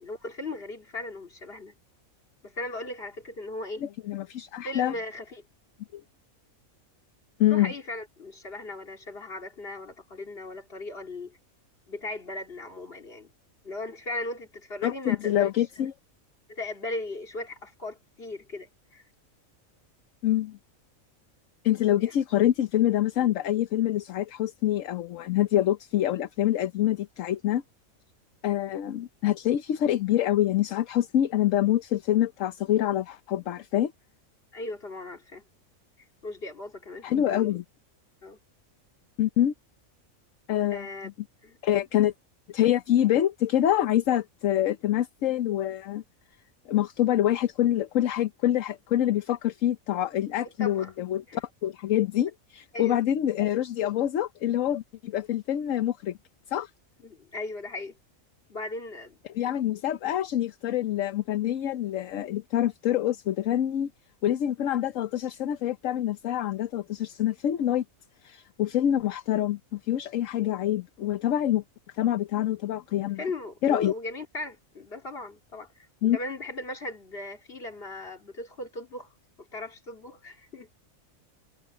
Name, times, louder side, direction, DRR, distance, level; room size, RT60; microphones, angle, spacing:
voice 1, 0.0-1.7 2.4-3.8 4.6-5.4 7.5-11.4 11.9-13.3 13.6-15.5 16.5-19.0 21.9-22.1 34.5-35.4 36.2-37.6 38.2-38.4 40.7-41.1 41.4-41.6 50.6-50.9 51.3-51.4 52.7-53.0 57.0-58.0 58.5-59.2 73.0-79.1 79.4-80.7, left 2 dB, 45° left, 2.8 m, -38 dB
voice 2, 3.8-4.9 5.9-6.0 7.4-7.7 14.8-15.9 20.2-20.6 21.6-27.6 28.4-33.9 37.0-37.6 39.2-39.5 40.5-40.9 41.6-42.1 42.5-46.0 46.7-56.2 56.5-56.7 59.3-63.9 64.2-67.8 68.2-71.6 72.0-73.2 73.6-73.9 76.0-76.2, left 12 dB, 70° left, 1.1 m, -26 dB
omnidirectional pair, 1.4 m